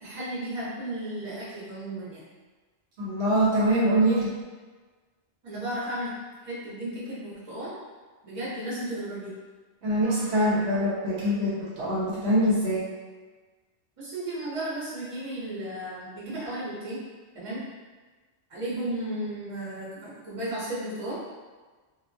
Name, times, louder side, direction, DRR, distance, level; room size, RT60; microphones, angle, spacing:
voice 1, 0.0-2.2 5.4-6.1 6.4-7.7 8.2-9.3 14.0-17.0 17.3-17.7 18.5-21.2, right 1 dB, 35° right, -9 dB, 0.8 m, -34 dB
voice 2, 3.0-4.3 9.8-12.8, equal, 70° right, -7 dB, 0.9 m, -24 dB
2.3 x 2.1 x 2.6 m, 1.4 s
omnidirectional pair, 1.1 m